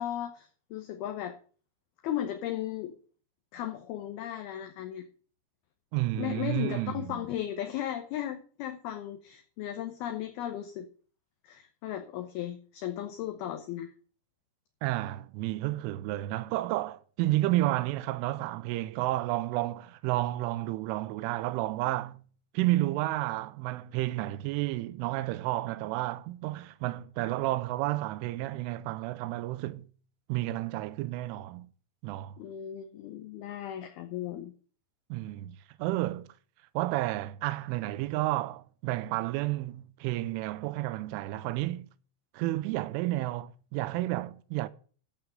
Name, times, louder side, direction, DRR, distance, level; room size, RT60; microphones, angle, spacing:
voice 1, 0.0-1.3 2.0-2.9 3.5-5.0 6.2-10.9 11.4-13.9 32.4-34.5, left 11 dB, 75° left, 2.4 m, -36 dB
voice 2, 5.9-7.2 14.8-22.2 22.5-29.9 30.3-31.7 32.0-32.4 35.1-36.3 36.7-41.9 42.3-44.7, right 17 dB, 85° right, 3.2 m, -31 dB
14.0 x 4.8 x 7.4 m
omnidirectional pair, 5.5 m